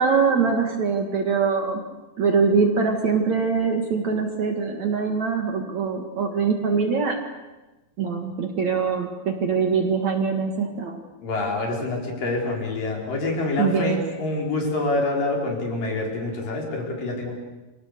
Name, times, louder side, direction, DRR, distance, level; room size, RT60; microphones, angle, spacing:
voice 1, 0.0-1.8 2.2-7.2 8.0-11.0 13.6-14.0, right 5 dB, 50° right, 4 dB, 2.8 m, -23 dB
voice 2, 11.2-17.4, left 2 dB, 55° left, 0 dB, 6.2 m, -26 dB
29.5 x 25.0 x 6.8 m, 1.1 s
omnidirectional pair, 4.6 m